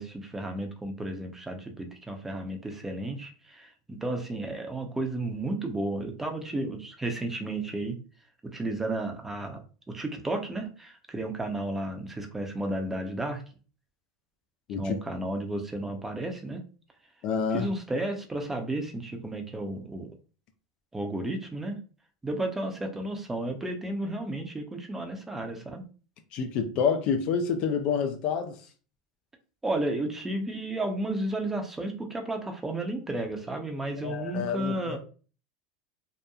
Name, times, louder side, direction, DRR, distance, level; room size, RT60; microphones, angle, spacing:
voice 1, 0.0-8.0 8.4-13.4 14.8-16.6 17.5-20.1 20.9-21.8 22.2-25.8 29.6-35.0, right 1 dB, 15° right, 0.6 m, -33 dB
voice 2, 17.2-17.7 26.3-28.6 34.0-35.0, left 6 dB, 55° left, 0.4 m, -28 dB
2.9 x 2.1 x 2.3 m
hypercardioid pair, 90°, 2 cm